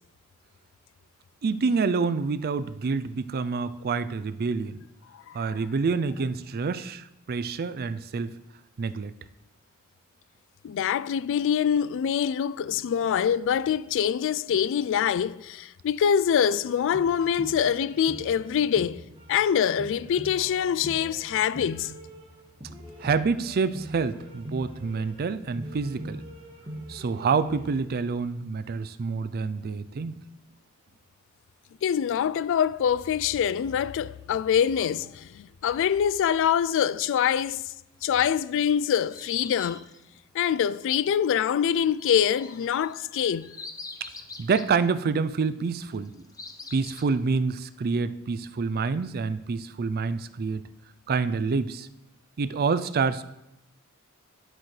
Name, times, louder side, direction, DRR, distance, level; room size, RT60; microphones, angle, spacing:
voice 1, 1.4-4.8 5.3-8.3 8.8-9.1 23.0-26.2 26.9-30.1 44.4-46.1 46.7-50.7 51.1-51.9 52.4-53.2, right 4 dB, 45° right, 0.4 m, -27 dB
voice 2, 10.6-19.0 19.3-22.0 31.8-37.7 38.0-39.8 40.3-43.5, left 8 dB, 60° left, 0.3 m, -25 dB
sound 1, 16.4-27.7, right 1 dB, 25° right, 1.5 m, -43 dB
sound 2, 38.6-40.0 42.0-44.7 45.8-47.0, left 3 dB, 15° left, 0.7 m, -43 dB
11.0 x 7.7 x 3.2 m
head